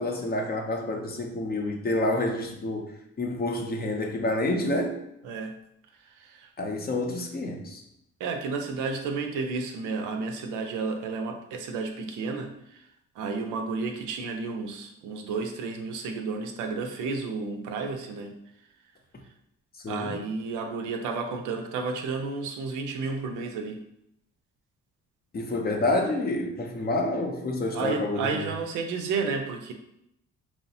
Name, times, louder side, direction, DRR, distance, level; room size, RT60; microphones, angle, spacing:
voice 1, 0.0-2.9 3.2-5.0 6.6-7.8 19.8-20.2 25.3-28.5, left 2 dB, 30° left, 2 dB, 0.5 m, -28 dB
voice 2, 6.2-6.5 8.2-12.8 13.2-18.4 19.9-23.8 27.7-29.7, right 4 dB, 85° right, 4 dB, 0.5 m, -32 dB
3.0 x 2.0 x 2.6 m, 0.79 s
cardioid pair, 90°, 30 cm